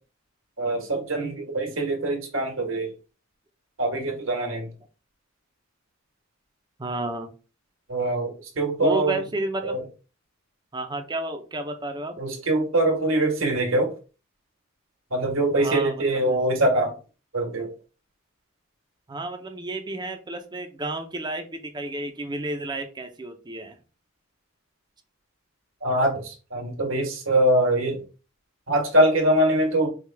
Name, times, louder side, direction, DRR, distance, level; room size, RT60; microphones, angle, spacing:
voice 1, 0.6-2.9 3.8-4.7 7.9-9.2 9.6-9.8 12.2-13.9 15.1-17.0 17.3-17.7 25.8-28.0 28.7-29.9, right 1 dB, 80° right, 1 dB, 1.5 m, -23 dB
voice 2, 6.8-7.3 8.8-9.8 10.7-12.2 15.6-16.0 19.1-23.8, right 2 dB, 20° right, 5 dB, 0.6 m, -31 dB
4.9 x 2.4 x 3.4 m, 0.34 s
head